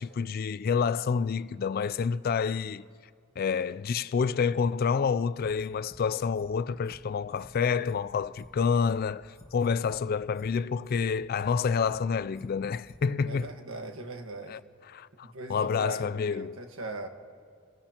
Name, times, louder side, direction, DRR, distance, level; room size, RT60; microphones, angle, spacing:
voice 1, 0.0-2.8 3.4-13.5 14.5-14.6 14.9-16.6, left 6 dB, 45° left, 0.3 m, -28 dB
sound 1, 5.6-6.0 6.3-6.5 6.8-7.0 7.3-8.0 8.3-8.5 8.8-9.0 9.3-10.0 10.3-10.5 10.8-11.0 11.3-12.0 12.3-12.5 12.8-13.0 13.3-13.4, left 1 dB, 15° left, 1.5 m, -52 dB
voice 2, 13.3-14.6 15.2-17.1, right 2 dB, 65° right, 1.5 m, -39 dB
27.5 x 17.0 x 2.9 m
head